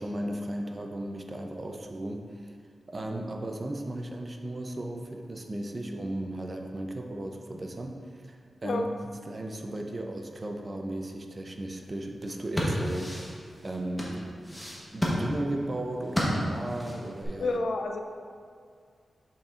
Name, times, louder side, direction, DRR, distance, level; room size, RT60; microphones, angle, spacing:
voice 1, 0.0-2.6 2.9-8.9 9.2-13.3 13.6-14.6 14.9-17.6, right 1 dB, 30° right, 3 dB, 0.5 m, -36 dB
sound 1, 12.2-17.3, equal, 5° left, 1.0 m, -31 dB
voice 2, 17.4-18.0, left 2 dB, 70° left, 4 dB, 0.4 m, -29 dB
6.9 x 5.6 x 2.4 m, 2.1 s
wide cardioid pair, 130°, 0 cm